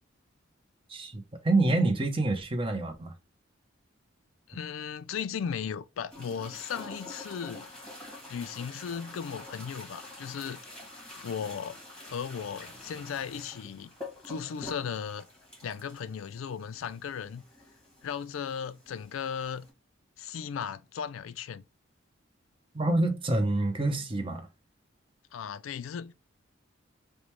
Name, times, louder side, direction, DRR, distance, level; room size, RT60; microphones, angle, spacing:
voice 1, 0.9-3.1 22.7-24.5, right 2 dB, 25° right, 0.7 m, -27 dB
voice 2, 4.5-7.7 8.3-10.6 11.2-11.8 12.1-13.9 14.2-15.3 15.6-17.4 18.0-19.7 20.2-21.6 25.3-26.1, left 7 dB, 80° left, 0.4 m, -36 dB
sound 1, 6.1-19.7, left 2 dB, 5° left, 1.3 m, -47 dB
4.9 x 2.2 x 3.0 m
head